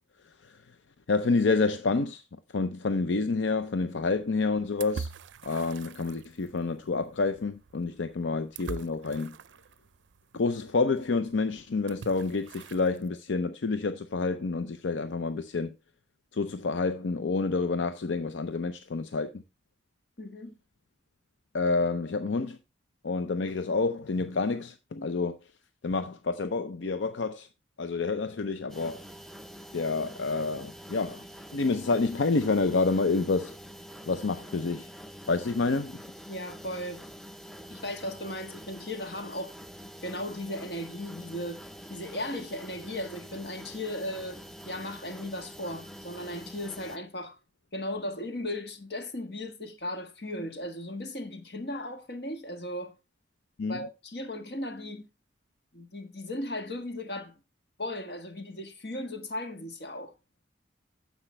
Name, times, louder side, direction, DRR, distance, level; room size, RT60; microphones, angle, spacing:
voice 1, 0.2-0.8 1.1-5.1 5.4-9.4 10.3-15.8 16.3-19.4 21.5-22.6 23.0-25.5 25.8-27.5 27.8-29.1 29.7-31.2 31.5-33.6 34.1-34.9 35.3-36.0 53.6-53.8, left 3 dB, 80° left, 0.6 m, -28 dB
sound 1, 3.6-13.1, right 5 dB, 75° right, 0.4 m, -46 dB
voice 2, 20.2-20.5 36.3-37.0 37.7-39.5 40.0-47.4 47.7-52.9 53.7-55.1 55.7-57.4 57.8-60.1, left 1 dB, 55° left, 1.5 m, -36 dB
sound 2, 28.7-47.0, equal, ahead, 0.5 m, -46 dB
9.9 x 7.2 x 3.2 m
head